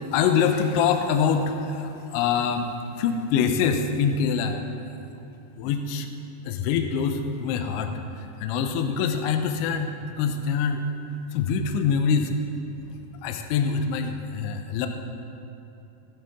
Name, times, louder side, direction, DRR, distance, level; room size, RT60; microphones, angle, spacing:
voice 1, 0.1-2.7 3.0-4.6 5.6-6.1 6.5-7.9 8.4-10.9 11.3-12.3 13.2-14.9, left 6 dB, 80° left, 6 dB, 2.9 m, -24 dB
16.0 x 10.5 x 3.5 m, 2.9 s
omnidirectional pair, 5.4 m